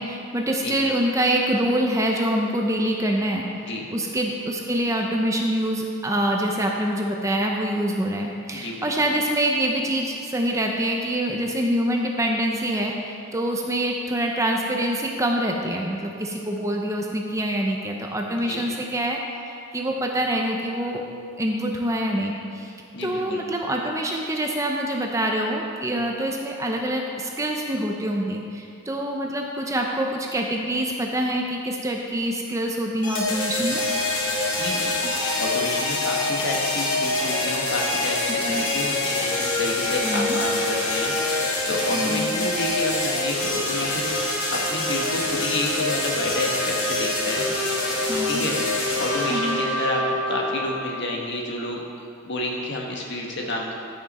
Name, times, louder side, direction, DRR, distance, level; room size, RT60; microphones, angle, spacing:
voice 1, 0.0-3.5 3.9-21.0 21.4-22.7 23.0-33.8 38.4-38.6 40.0-40.4 41.9-42.3 48.0-48.4 49.3-49.6, right 1 dB, 15° right, 1 dB, 0.7 m, -25 dB
voice 2, 8.5-9.1 18.3-18.6 22.9-23.4 34.2-34.9 35.4-44.1 44.5-47.4 48.3-48.6 49.0-50.0 50.3-51.8 52.2-53.7, left 1 dB, 55° left, 0 dB, 1.3 m, -30 dB
sound 1, 33.0-51.0, left 2 dB, 90° left, 2.2 m, -25 dB
14.0 x 5.9 x 4.2 m, 2.4 s
head